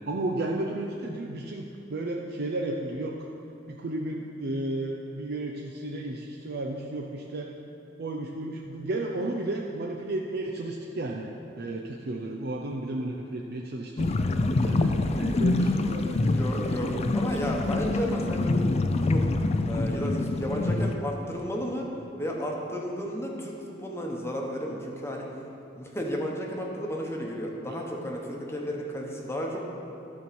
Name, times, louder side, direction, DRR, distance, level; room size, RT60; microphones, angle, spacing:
voice 1, 0.1-3.3 3.7-7.5 8.0-16.4 27.7-27.8, right 2 dB, 55° right, 0 dB, 0.6 m, -33 dB
sound 1, 14.0-21.0, left 2 dB, 35° left, 0.4 m, -26 dB
voice 2, 16.3-19.3 19.6-21.9 22.2-25.3 25.7-29.6, equal, 15° left, -1 dB, 1.1 m, -33 dB
12.0 x 4.6 x 6.9 m, 2.7 s
head